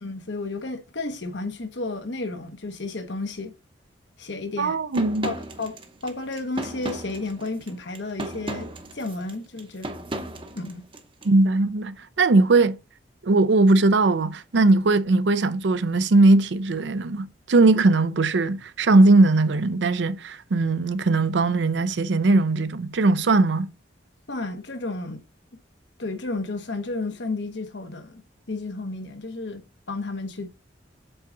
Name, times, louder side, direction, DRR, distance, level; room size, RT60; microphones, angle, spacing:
voice 1, 0.0-3.5 4.2-4.8 5.2-5.8 6.0-8.7 8.9-9.9 10.5-10.8 24.3-25.2 26.0-28.2 28.5-29.6 29.9-30.5, left 2 dB, 80° left, 1.2 m, -32 dB
voice 2, 4.6-5.3 11.2-12.8 13.2-23.7, right 2 dB, 80° right, 0.5 m, -19 dB
sound 1, 4.9-11.3, right 1 dB, 30° right, 0.8 m, -35 dB
7.9 x 4.0 x 3.8 m
head